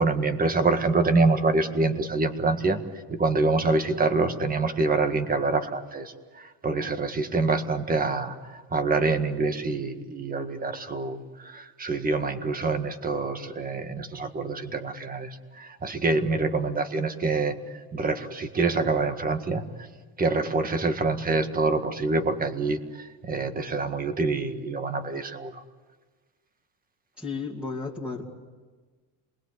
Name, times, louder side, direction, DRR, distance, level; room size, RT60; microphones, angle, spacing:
voice 1, 0.0-2.8 3.1-17.6 17.9-19.9 20.2-25.6, right 3 dB, 25° right, 8 dB, 1.8 m, -26 dB
voice 2, 27.2-28.3, left 4 dB, 5° right, -6 dB, 2.6 m, -33 dB
27.5 x 21.0 x 8.3 m, 1.4 s
cardioid pair, 135°, 35 cm